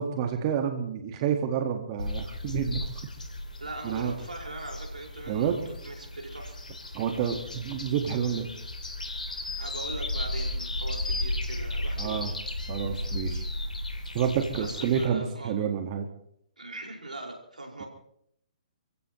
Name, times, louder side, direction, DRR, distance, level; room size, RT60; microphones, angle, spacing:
voice 1, 0.0-3.0 3.8-4.1 5.3-5.6 6.9-8.5 12.0-12.3 12.7-13.4 14.1-16.1, right 8 dB, 40° right, 5 dB, 1.7 m, -29 dB
sound 1, 2.0-15.1, left 1 dB, 85° left, 3.1 m, -35 dB
voice 2, 3.6-6.6 9.6-12.2 14.5-15.6 16.6-17.9, right 2 dB, 90° right, 0 dB, 5.1 m, -40 dB
29.5 x 16.0 x 3.1 m, 0.71 s
figure-of-eight pair, 130°, 4 cm